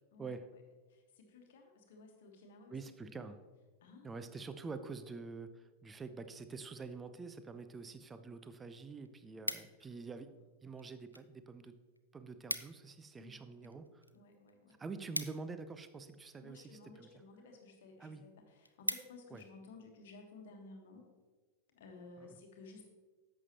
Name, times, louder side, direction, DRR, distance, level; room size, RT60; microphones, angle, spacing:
voice 1, 0.9-3.1 3.8-4.1 9.5-10.1 13.2-13.8 14.1-14.8 16.4-21.0 21.7-22.9, left 3 dB, 55° left, 3 dB, 1.3 m, -56 dB
voice 2, 2.7-3.4 4.0-10.3 10.6-11.7 12.1-14.0 14.8-17.1 18.0-18.2 19.3-19.4 22.2-22.4, right 4 dB, 15° right, 11 dB, 0.6 m, -47 dB
sound 1, 8.3-8.4 8.7-10.1 10.8-11.3 11.6-11.7 12.0-12.1 12.3-12.9 13.3-16.1 16.8-17.2 17.7-17.8 18.1-18.2 18.5-19.5 20.0-20.2, equal, 90° left, 0.4 m, -42 dB
11.0 x 7.6 x 2.9 m, 1.3 s
figure-of-eight pair, 90°, 0 cm